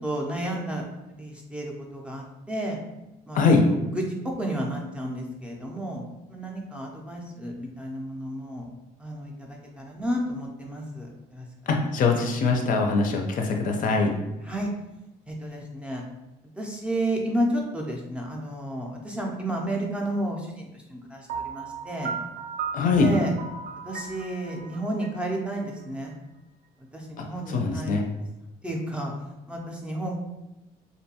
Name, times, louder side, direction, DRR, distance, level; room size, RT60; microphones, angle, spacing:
voice 1, 0.0-0.8 1.1-2.8 3.3-3.4 3.9-6.0 6.3-8.7 9.0-11.8 14.4-14.7 15.3-16.0 16.6-22.1 23.0-23.3 23.9-26.2 26.9-28.0 28.6-29.1 29.5-30.1, right 1 dB, 5° right, -2 dB, 0.4 m, -31 dB
voice 2, 11.7-14.1 22.7-23.2 27.2-28.0, left 4 dB, 55° left, 2 dB, 0.4 m, -22 dB
Piano, 21.3-26.1, right 5 dB, 70° right, 0.4 m, -36 dB
2.6 x 2.2 x 2.7 m, 0.97 s
cardioid pair, 110°, 17 cm